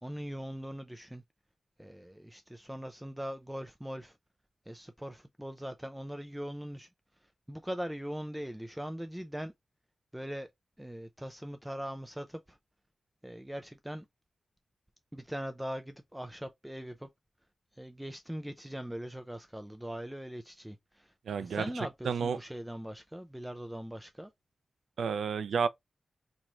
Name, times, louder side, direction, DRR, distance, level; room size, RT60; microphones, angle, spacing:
voice 1, 0.0-1.2 1.8-4.2 4.7-6.9 7.5-9.5 10.1-10.5 10.8-12.6 13.2-14.1 15.1-17.1 17.7-21.1 21.4-24.3, equal, 5° right, 0.3 m, -41 dB
voice 2, 21.3-21.6 22.0-22.4 25.0-25.7, right 6 dB, 85° right, 0.3 m, -30 dB
3.0 x 2.4 x 4.1 m
wide cardioid pair, 130°, 0 cm